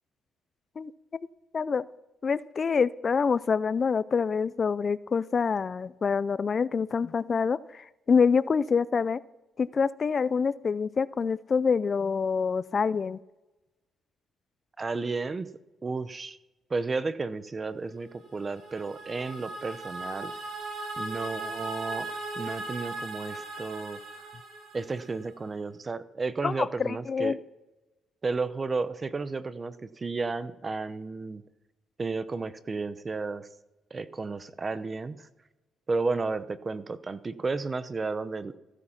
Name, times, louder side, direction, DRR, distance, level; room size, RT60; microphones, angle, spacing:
voice 1, 1.5-1.9 2.2-9.2 9.6-13.2 26.4-26.5 26.8-27.4, left 5 dB, 40° left, 18 dB, 0.4 m, -26 dB
voice 2, 14.8-15.5 15.8-16.4 16.7-20.3 21.0-24.0 24.7-27.4 28.2-31.4 32.0-33.5 33.9-35.3 35.9-38.6, right 4 dB, 30° right, 14 dB, 0.8 m, -32 dB
sound 1, 18.2-25.3, right 2 dB, 65° right, 3.6 m, -38 dB
15.0 x 9.9 x 5.8 m, 1.1 s
cardioid pair, 90°, 0 cm